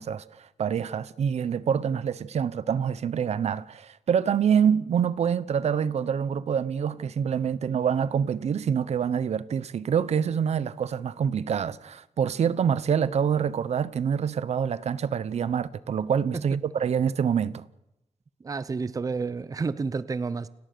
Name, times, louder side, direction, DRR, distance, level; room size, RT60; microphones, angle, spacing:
voice 1, 0.0-17.6, right 7 dB, 70° right, 0.9 m, -26 dB
voice 2, 18.4-20.5, right 4 dB, 30° right, 0.7 m, -30 dB
29.5 x 17.0 x 6.8 m
wide cardioid pair, 145°, 12 cm